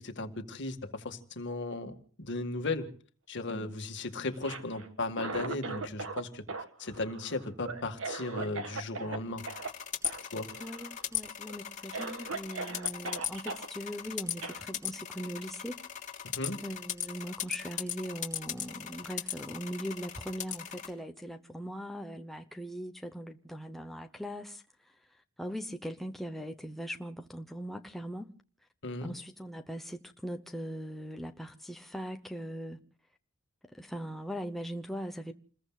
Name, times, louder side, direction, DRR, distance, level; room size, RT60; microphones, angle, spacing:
voice 1, 0.0-2.9 3.3-6.4 6.8-9.4 10.3-10.5 16.3-16.6 28.8-29.1, left 2 dB, 55° left, 1.9 m, -36 dB
Cough, 4.3-6.2 6.5-9.2 9.5-9.7 10.0-10.2 10.5-11.0 11.5-11.6 11.9-13.6 14.4-14.6, right 3 dB, 65° right, 1.9 m, -39 dB
sound 1, 9.4-20.9, left 9 dB, 35° left, 3.2 m, -38 dB
voice 2, 10.6-15.8 16.6-24.6 25.4-28.3 29.0-32.8 33.6-35.3, equal, ahead, 0.8 m, -40 dB
28.5 x 21.0 x 2.4 m
head